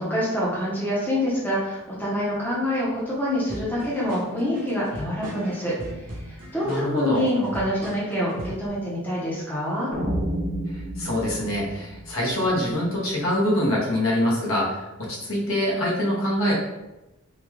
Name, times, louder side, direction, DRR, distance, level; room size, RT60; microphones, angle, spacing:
voice 1, 0.0-9.9, equal, 10° left, -7 dB, 0.8 m, -26 dB
sound 1, 3.5-8.7, equal, 40° right, 0.8 m, -38 dB
voice 2, 6.6-7.2 10.7-16.5, left 1 dB, 65° left, -4 dB, 1.0 m, -25 dB
sound 2, 9.9-13.0, equal, 80° right, 1.0 m, -31 dB
3.7 x 2.3 x 3.0 m, 0.99 s
head